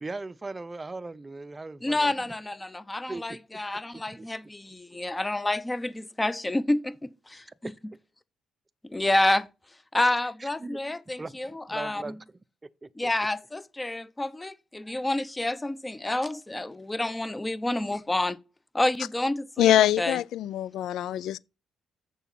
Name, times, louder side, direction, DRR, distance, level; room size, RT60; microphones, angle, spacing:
voice 1, 0.0-2.3 3.1-3.6 3.9-4.3 10.0-10.8 11.2-11.4 11.7-12.2 12.8-13.1, right 3 dB, 20° right, 0.6 m, -39 dB
voice 2, 1.8-7.7 8.8-9.5 9.9-12.2 13.0-18.4 18.7-19.7 20.0-20.2, left 2 dB, 15° left, 0.7 m, -29 dB
voice 3, 19.6-21.4, left 12 dB, 80° left, 0.4 m, -23 dB
7.0 x 6.1 x 5.9 m
cardioid pair, 90°, 0 cm